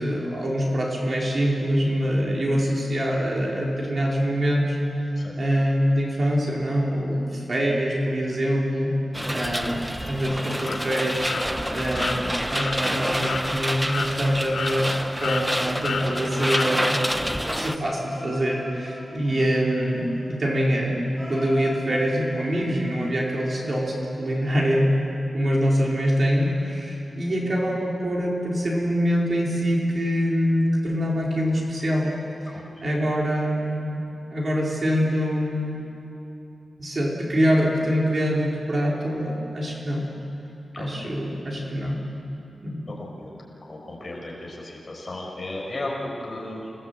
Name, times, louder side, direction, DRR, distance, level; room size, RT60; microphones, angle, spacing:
voice 1, 0.0-4.8 5.4-8.9 9.3-9.8 10.1-11.2 11.7-17.1 17.5-21.0 21.3-24.9 25.3-32.1 32.8-34.0 34.3-35.8 36.8-40.1 40.7-42.0 42.6-42.8, equal, 40° right, -3 dB, 4.3 m, -24 dB
sound 1, 9.1-17.8, equal, 5° right, 0.6 m, -28 dB
sound 2, 10.6-10.8 11.3-11.4 11.9-12.2 12.6-12.7 13.2-13.4 13.9-14.1 14.5-15.0 15.2-15.5 15.8-16.1 16.5-16.7, left 5 dB, 75° left, 2.7 m, -30 dB
sound 3, 11.5-16.8 17.7-24.3 25.5-27.2 27.6-27.9 28.6-28.7, left 1 dB, 20° right, 6.8 m, -43 dB
voice 2, 32.5-32.9 40.7-41.1 42.9-43.3 43.7-46.7, left 1 dB, 30° left, -2 dB, 5.3 m, -35 dB
28.0 x 19.0 x 8.2 m, 2.8 s
wide cardioid pair, 145°, 0 cm